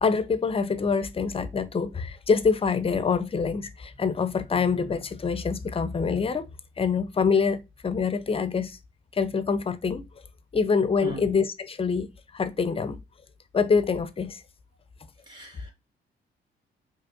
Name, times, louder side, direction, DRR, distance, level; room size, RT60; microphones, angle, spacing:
voice 1, 0.0-6.5 6.8-8.8 9.1-10.0 10.5-12.1 12.3-13.0 13.5-14.4, left 5 dB, 30° left, 0.5 m, -25 dB
voice 2, 15.3-15.7, equal, 25° right, 2.2 m, -38 dB
4.8 x 2.9 x 2.4 m
cardioid pair, 90°, 20 cm